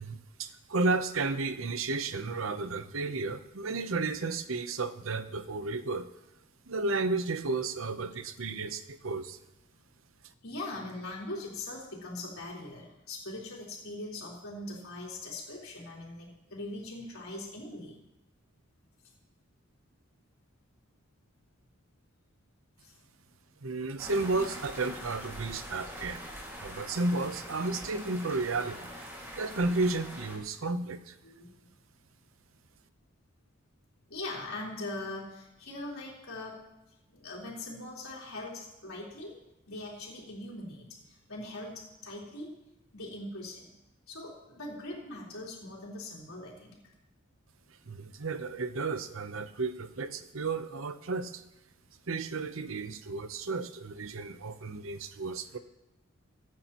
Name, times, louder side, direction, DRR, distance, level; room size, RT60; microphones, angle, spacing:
voice 1, 0.0-6.1 6.7-9.4 23.6-26.2 26.6-28.9 29.4-31.1 47.9-51.4 52.1-55.6, right 3 dB, 70° right, 11 dB, 0.8 m, -33 dB
voice 2, 10.4-18.0 22.8-22.9 31.2-31.7 34.1-36.6 37.1-39.4 39.7-42.6 42.9-43.7 44.1-46.9, left 2 dB, 80° left, -4 dB, 3.9 m, -41 dB
sound 1, 24.0-30.4, equal, 10° right, 2.1 m, -43 dB
23.0 x 9.4 x 3.0 m, 0.90 s
head